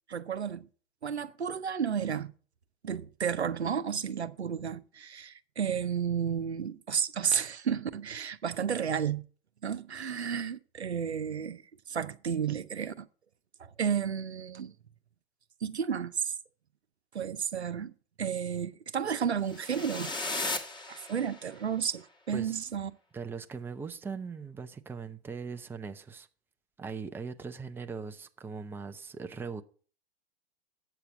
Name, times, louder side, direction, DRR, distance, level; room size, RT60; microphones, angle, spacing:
voice 1, 0.1-0.7 1.0-2.3 2.8-9.2 9.6-11.6 11.9-13.1 13.6-14.7 15.6-16.3 17.1-17.9 18.2-20.1 20.9-22.9, right 7 dB, 90° right, 0.7 m, -32 dB
sound 1, 19.5-21.6, left 2 dB, 15° left, 1.5 m, -36 dB
voice 2, 22.3-22.6 23.1-26.3 26.8-29.6, right 5 dB, 5° right, 0.6 m, -40 dB
8.2 x 6.9 x 7.5 m
figure-of-eight pair, 100°, 32 cm